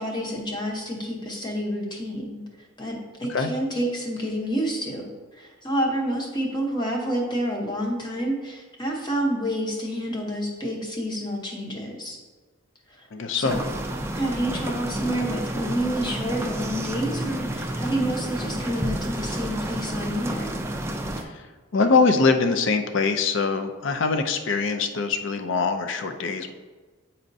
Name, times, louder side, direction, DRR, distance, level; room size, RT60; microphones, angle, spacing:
voice 1, 0.0-2.4 2.8-5.1 5.3-12.2 12.9-13.1 13.3-13.6 14.1-20.6, right 1 dB, 20° left, 0 dB, 0.8 m, -28 dB
voice 2, 13.1-13.6 21.7-26.5, left 4 dB, 60° left, 8 dB, 0.4 m, -23 dB
sound 1, 13.4-21.2, right 1 dB, 10° right, 0.3 m, -30 dB
8.4 x 4.2 x 2.6 m, 1.4 s
head